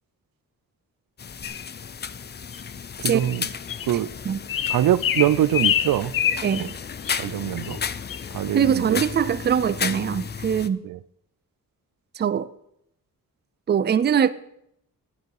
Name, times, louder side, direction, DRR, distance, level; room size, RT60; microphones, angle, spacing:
sound 1, 1.2-10.7, left 6 dB, 30° left, 0.4 m, -33 dB
sound 2, 1.4-1.6 2.5-2.6 3.2-3.4 3.7-3.9 4.5-6.7 7.0-7.2 7.6-7.8 8.1-8.2, left 9 dB, 80° left, 0.8 m, -26 dB
voice 1, 3.0-3.5 3.9-4.1 4.7-6.1 6.5-6.7 7.2-7.8 8.3-9.0 10.8-11.0, right 12 dB, 90° right, 18 dB, 0.5 m, -23 dB
voice 2, 3.9-4.4 6.4-6.7 8.5-10.8 12.2-12.5 13.7-14.3, right 8 dB, 30° right, 15 dB, 0.4 m, -22 dB
12.0 x 9.4 x 4.8 m, 0.75 s
wide cardioid pair, 175°, 33 cm